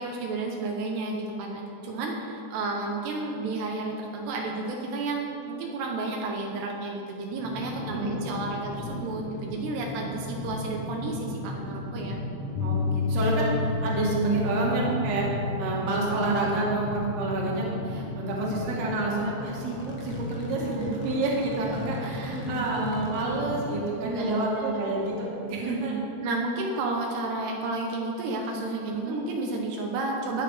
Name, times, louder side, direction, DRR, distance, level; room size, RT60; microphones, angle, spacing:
voice 1, 0.0-12.2 20.6-21.0 21.6-21.8 22.3-22.6 24.0-24.8 25.6-30.4, right 3 dB, 80° right, 0 dB, 3.1 m, -32 dB
sound 1, 7.4-23.9, left 1 dB, 80° left, 1.0 m, -36 dB
voice 2, 7.8-8.2 12.6-15.3 15.6-25.9 28.9-29.2, right 2 dB, 45° right, -3 dB, 2.7 m, -29 dB
Piano, 12.5-20.6, left 3 dB, 55° left, 2.3 m, -33 dB
19.5 x 6.6 x 5.0 m, 2.7 s
omnidirectional pair, 4.9 m